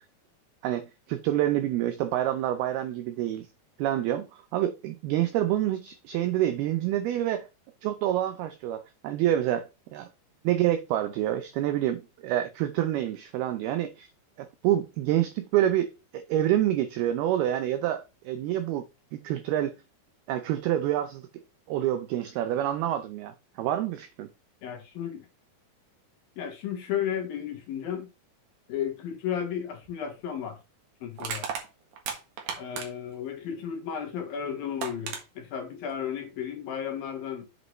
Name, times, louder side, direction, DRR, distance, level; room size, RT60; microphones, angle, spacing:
voice 1, 0.6-3.5 3.8-7.5 7.8-10.1 10.4-14.1 14.4-18.9 19.1-19.7 20.3-21.3 21.7-24.3, right 12 dB, 85° right, 2.2 m, -27 dB
voice 2, 24.6-25.3 26.4-28.1 28.7-30.6 31.0-31.5 32.6-37.5, left 8 dB, 65° left, 2.6 m, -33 dB
Crushing, 29.8-30.0 31.2-33.1 34.3-34.4 34.8-35.2, right 6 dB, 60° right, 2.5 m, -35 dB
7.8 x 7.8 x 3.1 m
omnidirectional pair, 5.3 m